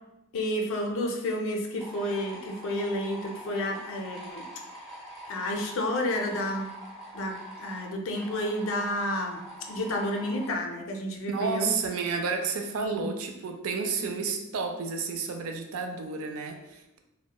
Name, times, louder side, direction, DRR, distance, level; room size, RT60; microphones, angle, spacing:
voice 1, 0.3-4.4 5.3-6.7 7.1-9.4 9.7-11.7 12.8-13.1, left 1 dB, 60° left, 2 dB, 0.4 m, -30 dB
sound 1, 1.8-10.5, right 1 dB, ahead, 0.6 m, -44 dB
voice 2, 11.3-17.0, right 4 dB, 65° right, 4 dB, 0.3 m, -31 dB
2.8 x 2.1 x 2.2 m, 0.91 s
head